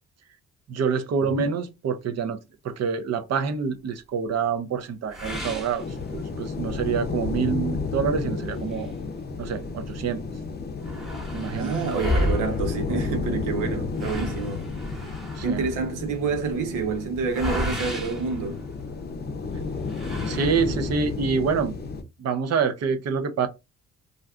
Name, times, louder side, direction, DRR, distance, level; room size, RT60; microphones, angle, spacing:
voice 1, 0.7-2.4 2.6-5.8 6.1-8.9 9.4-10.2 11.3-11.8 15.4-15.6 20.3-21.7 22.2-23.5, right 6 dB, 55° right, 0.7 m, -26 dB
sound 1, 5.1-6.6 7.0-7.1 7.6-7.7 8.5-9.8 10.1-10.2 10.4-19.2 19.8-21.0, left 1 dB, ahead, 1.0 m, -33 dB
sound 2, 5.8-22.0, left 4 dB, 35° left, 0.6 m, -32 dB
voice 2, 11.5-14.7 15.4-18.6, right 4 dB, 90° right, 0.9 m, -28 dB
2.5 x 2.2 x 3.5 m
cardioid pair, 90°, 30 cm